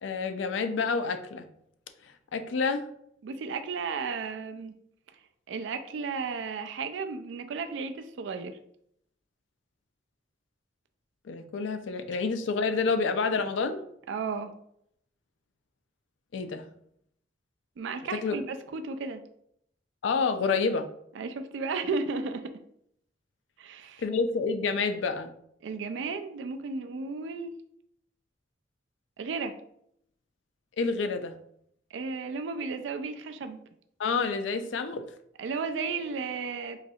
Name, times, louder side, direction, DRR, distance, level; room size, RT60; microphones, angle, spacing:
voice 1, 0.0-1.5 2.3-2.8 11.3-13.8 16.3-16.7 18.1-18.4 20.0-20.9 24.0-25.3 30.8-31.4 34.0-35.0, left 4 dB, 85° left, 8 dB, 0.4 m, -28 dB
voice 2, 3.2-4.7 5.5-8.6 14.1-14.5 17.8-19.2 21.2-22.5 23.6-24.0 25.6-27.5 29.2-29.5 31.9-33.6 35.4-36.8, right 4 dB, 85° right, 8 dB, 0.3 m, -34 dB
3.9 x 3.1 x 2.7 m, 0.71 s
head